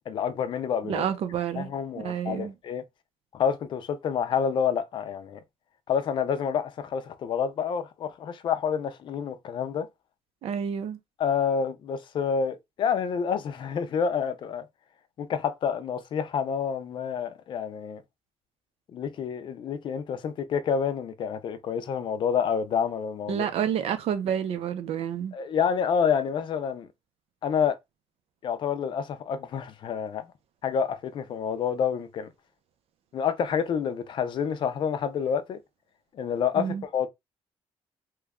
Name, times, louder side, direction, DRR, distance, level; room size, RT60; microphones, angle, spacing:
voice 1, 0.1-1.0 1.6-2.8 3.3-5.4 5.9-9.9 11.2-14.7 15.2-18.0 18.9-23.5 25.3-26.9 27.4-27.8 28.4-30.3 30.6-32.3 33.1-35.6 36.1-37.1, left 7 dB, 45° left, 0.4 m, -28 dB
voice 2, 0.8-2.5 10.4-11.0 23.3-25.3 36.6-36.8, right 8 dB, 65° right, 0.6 m, -29 dB
3.0 x 2.3 x 3.5 m
cardioid pair, 170°, 11 cm